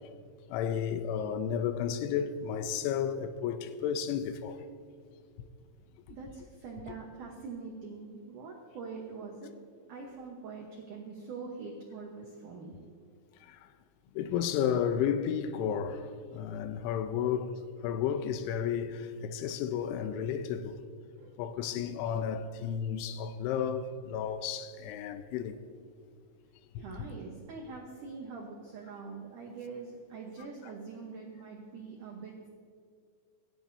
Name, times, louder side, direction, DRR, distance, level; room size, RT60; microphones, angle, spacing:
voice 1, 0.5-4.6 13.4-13.7 14.1-20.8 21.4-25.6 26.8-26.9, left 8 dB, 90° left, 3.0 m, -32 dB
voice 2, 6.1-9.5 9.9-12.9 21.2-21.3 26.8-32.5, right 4 dB, 85° right, 1.8 m, -44 dB
26.0 x 10.5 x 2.7 m
omnidirectional pair, 5.4 m